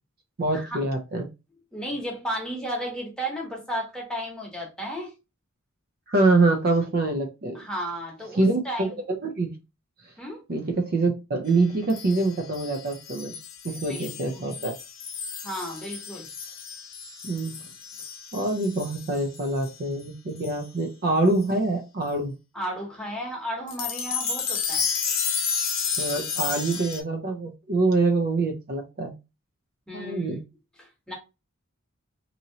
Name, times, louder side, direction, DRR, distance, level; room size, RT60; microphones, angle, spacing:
voice 1, 0.4-1.3 6.1-7.6 8.3-8.9 9.2-9.5 10.5-13.3 13.6-14.7 17.2-17.6 18.3-22.3 26.0-29.1 29.9-30.4, right 2 dB, 45° right, 0.5 m, -25 dB
voice 2, 1.7-5.1 7.5-9.0 10.2-10.4 13.9-14.5 15.4-16.3 22.5-24.9 29.9-30.4 30.8-31.1, equal, 5° left, 0.9 m, -34 dB
sound 1, 11.9-19.8 20.4-20.6 21.4-21.5 23.7-27.0, left 6 dB, 75° left, 0.7 m, -32 dB
2.9 x 2.7 x 2.7 m
head